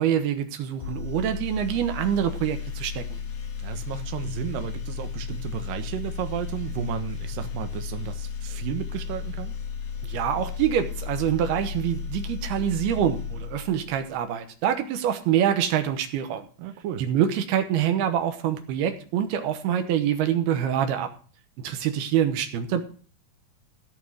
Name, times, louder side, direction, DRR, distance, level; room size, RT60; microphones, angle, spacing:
voice 1, 0.0-3.2 10.0-16.5 17.0-21.1 21.6-22.8, right 10 dB, 85° right, 7 dB, 3.1 m, -25 dB
sound 1, 0.8-14.2, left 6 dB, 75° left, 3.8 m, -34 dB
voice 2, 3.6-9.5 16.6-17.0, right 8 dB, 70° right, 7 dB, 2.6 m, -33 dB
16.0 x 5.4 x 6.2 m, 0.41 s
omnidirectional pair, 4.4 m